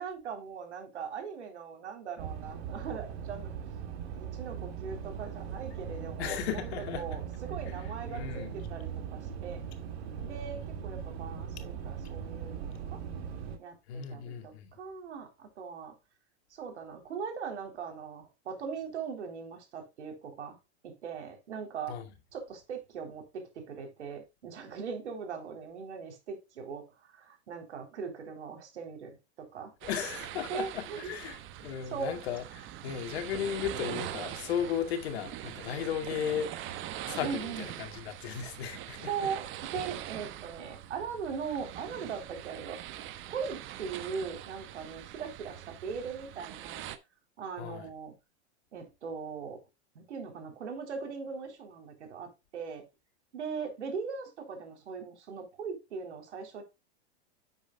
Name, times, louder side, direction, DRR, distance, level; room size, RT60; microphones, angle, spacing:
voice 1, 0.0-3.5 4.2-9.6 10.2-13.0 13.6-16.0 16.5-20.6 20.8-22.0 22.3-29.7 30.5-31.4 31.9-32.2 37.2-37.7 39.0-42.8 43.2-46.9 47.4-48.1 48.7-49.6 50.0-52.8 53.3-56.6, right 6 dB, 85° right, 3.7 m, -40 dB
sound 1, 2.2-13.6, right 7 dB, 65° right, 2.3 m, -39 dB
voice 2, 6.2-7.2 7.7-7.8 8.1-8.6 13.9-14.7 21.9-22.0 29.8-39.1 47.6-47.9, left 8 dB, 65° left, 2.3 m, -36 dB
sound 2, 29.8-47.0, right 12 dB, 35° right, 1.1 m, -43 dB
10.0 x 8.1 x 2.3 m
hypercardioid pair, 120°, 34 cm